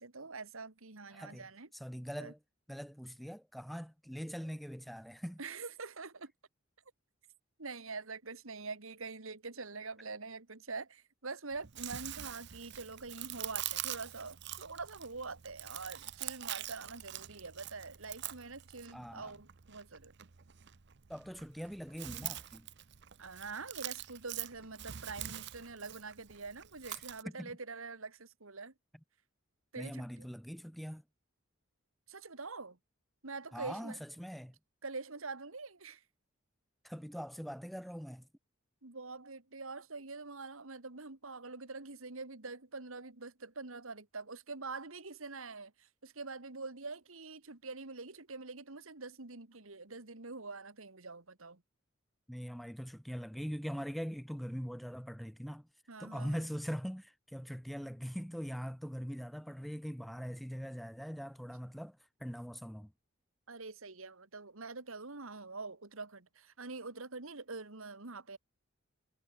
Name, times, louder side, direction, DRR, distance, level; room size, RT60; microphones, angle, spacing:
voice 1, 0.0-1.7 2.2-2.3 5.4-6.3 7.6-20.1 23.2-28.7 29.7-30.3 32.1-32.8 33.2-34.0 34.8-36.0 38.8-51.6 55.9-56.5 63.5-68.4, right 3 dB, 75° right, 2.1 m, -45 dB
voice 2, 1.1-1.4 1.7-2.4 2.7-5.4 18.9-19.3 21.1-22.7 26.9-27.0 27.4-27.5 29.8-31.0 33.5-34.5 36.8-38.3 52.3-55.7 56.0-62.9, equal, ahead, 0.9 m, -42 dB
Chewing mastication, 11.5-27.2, right 13 dB, 55° right, 0.7 m, -45 dB
head